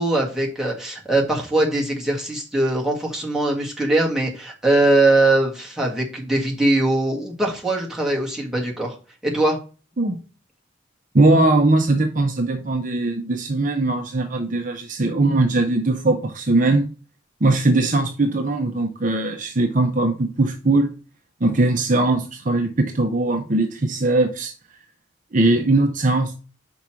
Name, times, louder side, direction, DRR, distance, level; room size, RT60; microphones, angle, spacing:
voice 1, 0.0-9.0 9.2-9.6, right 2 dB, 5° right, -3 dB, 1.7 m, -21 dB
voice 2, 11.1-16.9 17.4-20.9 21.4-24.5 25.3-26.4, right 2 dB, 40° right, 5 dB, 0.7 m, -20 dB
5.5 x 4.5 x 6.1 m, 0.35 s
head